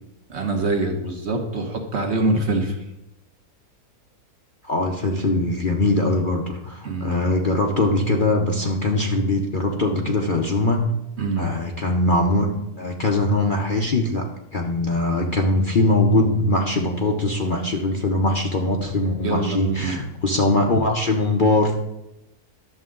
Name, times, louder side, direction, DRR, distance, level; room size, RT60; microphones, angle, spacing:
voice 1, 0.3-2.8 6.8-7.2 11.2-11.5 19.2-20.0, right 2 dB, 50° right, 3 dB, 1.2 m, -24 dB
voice 2, 4.6-10.8 11.4-12.5 12.8-21.8, left 2 dB, 45° left, 2 dB, 0.8 m, -21 dB
11.5 x 7.1 x 3.8 m, 0.89 s
omnidirectional pair, 1.6 m